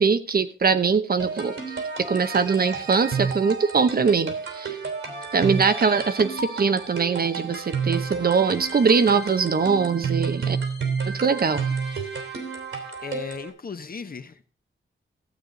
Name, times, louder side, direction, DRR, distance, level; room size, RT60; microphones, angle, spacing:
voice 1, 0.0-1.6 2.0-4.8 5.3-10.6 11.1-11.6, right 5 dB, 45° right, 11 dB, 0.9 m, -22 dB
sound 1, 1.2-13.5, right 5 dB, 75° right, 3.1 m, -30 dB
voice 2, 13.0-14.5, left 5 dB, 45° left, 9 dB, 1.1 m, -36 dB
15.0 x 8.1 x 4.0 m, 0.41 s
wide cardioid pair, 95°, 21 cm